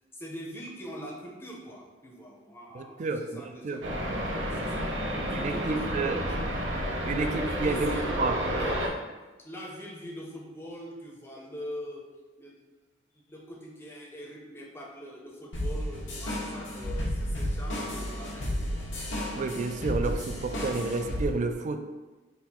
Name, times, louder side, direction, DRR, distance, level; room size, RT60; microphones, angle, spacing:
voice 1, 0.1-4.0 4.3-6.4 7.1-9.0 9.4-12.0 12.4-12.6 13.1-18.8, equal, 15° left, -1 dB, 0.6 m, -43 dB
voice 2, 2.7-3.8 5.3-6.2 7.0-7.9 8.2-8.4 19.4-21.8, right 3 dB, 40° right, 7 dB, 0.3 m, -30 dB
sound 1, 3.8-8.9, equal, 85° right, 0.7 m, -30 dB
sound 2, 15.5-21.2, equal, 80° left, 1.0 m, -32 dB
4.1 x 2.5 x 4.2 m, 1.2 s
head